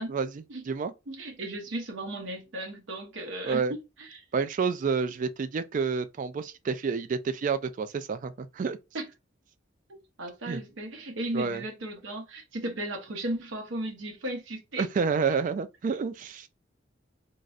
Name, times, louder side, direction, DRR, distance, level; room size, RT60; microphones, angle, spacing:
voice 1, 0.1-0.9 3.4-3.8 4.3-8.8 10.5-10.6 11.3-11.6 14.8-16.5, right 5 dB, 40° right, 0.3 m, -29 dB
voice 2, 1.1-4.2 8.9-9.1 9.9-14.9, right 1 dB, 75° right, 0.8 m, -36 dB
3.9 x 2.0 x 2.4 m
head